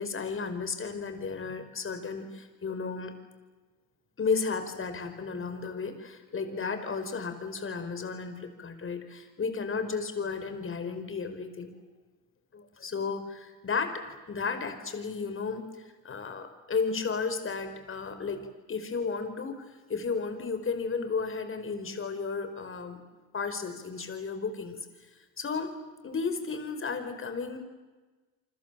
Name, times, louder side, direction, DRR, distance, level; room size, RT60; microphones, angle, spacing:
voice 1, 0.0-3.1 4.2-11.7 12.5-15.6 16.0-18.4 18.7-19.6 19.9-23.0 23.3-24.8 25.4-25.7 26.0-27.6, left 5 dB, 35° left, 8 dB, 5.0 m, -33 dB
29.5 x 25.0 x 7.7 m, 1.3 s
cardioid pair, 95°, 37 cm